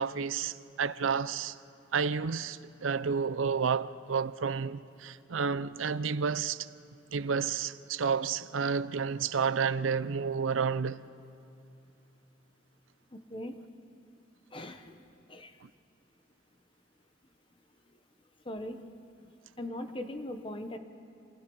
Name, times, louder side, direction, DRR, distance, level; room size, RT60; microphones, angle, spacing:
voice 1, 0.0-1.6 1.9-6.7 7.1-11.0 15.6-15.7, right 6 dB, 85° right, 0.5 m, -30 dB
voice 2, 13.1-13.6 14.5-14.9 15.3-15.5 18.5-18.9 19.6-20.8, left 1 dB, 25° left, 1.1 m, -39 dB
27.5 x 19.5 x 5.5 m
head